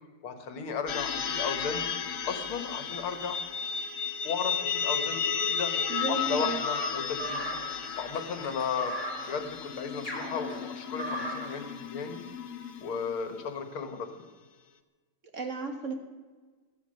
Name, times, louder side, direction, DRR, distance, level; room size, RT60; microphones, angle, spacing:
voice 1, 0.2-1.8 2.3-3.4 4.2-5.7 6.1-7.6 8.0-8.9 9.3-12.2 12.8-14.1, left 6 dB, 80° left, 8 dB, 2.3 m, -35 dB
sound 1, 0.9-13.4, left 7 dB, 55° left, 1.0 m, -34 dB
voice 2, 5.9-6.6 15.3-15.9, right 4 dB, 40° right, 5 dB, 1.7 m, -33 dB
sound 2, 6.6-11.6, equal, 10° left, 4.5 m, -37 dB
16.5 x 12.5 x 6.5 m, 1.4 s
omnidirectional pair, 2.3 m